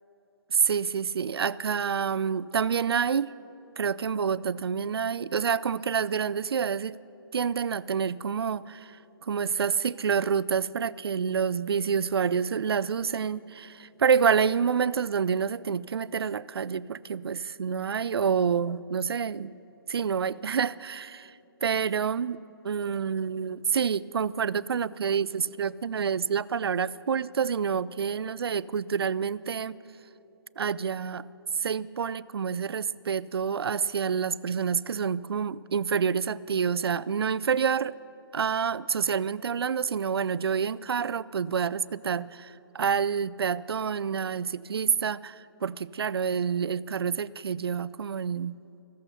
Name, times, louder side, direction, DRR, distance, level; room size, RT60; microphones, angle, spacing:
voice 1, 0.5-3.3 3.8-7.0 7.3-9.0 9.3-19.5 19.9-21.3 21.6-29.8 30.6-31.3 31.6-37.9 38.3-48.6, right 6 dB, 85° right, 19 dB, 0.4 m, -28 dB
15.0 x 14.0 x 5.6 m, 3.0 s
hypercardioid pair, 155°, 13 cm